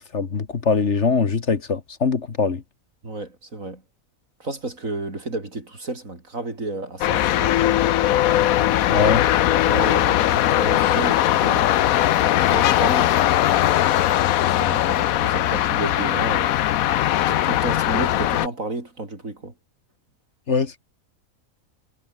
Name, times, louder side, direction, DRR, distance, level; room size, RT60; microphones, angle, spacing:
voice 1, 0.0-2.6 8.9-9.3 20.5-20.8, left 5 dB, 55° left, 1.9 m, -22 dB
voice 2, 3.0-3.8 4.4-7.6 9.7-13.1 14.2-16.6 17.3-19.5, right 2 dB, 65° right, 5.2 m, -32 dB
sound 1, 7.0-18.5, left 13 dB, 80° left, 1.1 m, -19 dB
omnidirectional pair, 1.5 m